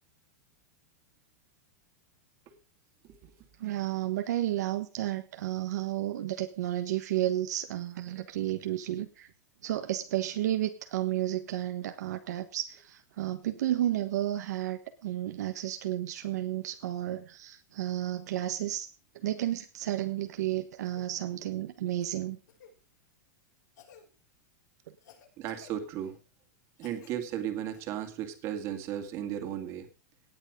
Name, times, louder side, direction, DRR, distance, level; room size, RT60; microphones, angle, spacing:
voice 1, 3.6-9.3 9.6-18.9 19.1-22.4, right 13 dB, 65° right, 7 dB, 1.3 m, -32 dB
Cough, 20.8-21.1 22.0-22.7 23.7-24.1 25.0-26.2 26.8-27.2 27.7-27.8 29.7-29.8, left 6 dB, 80° left, 7.4 m, -56 dB
voice 2, 25.4-26.2 26.8-29.9, right 10 dB, 30° right, 6 dB, 2.2 m, -35 dB
18.0 x 8.3 x 5.2 m, 0.35 s
supercardioid pair, 165°, 10 cm